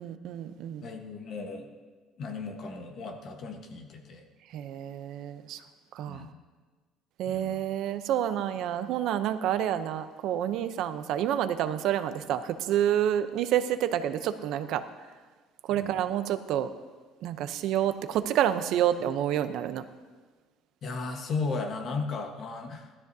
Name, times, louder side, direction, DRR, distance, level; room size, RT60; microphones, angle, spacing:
voice 1, 0.0-0.9 4.5-5.6 5.9-6.2 7.2-14.9 15.7-16.7 17.2-19.8, right 10 dB, 60° right, 11 dB, 0.7 m, -28 dB
voice 2, 0.8-1.7 2.2-4.3 6.1-6.3 7.2-7.6 15.7-15.9 20.8-23.0, left 4 dB, 40° left, 3 dB, 1.3 m, -35 dB
18.5 x 13.0 x 2.8 m, 1.4 s
cardioid pair, 165°, 0 cm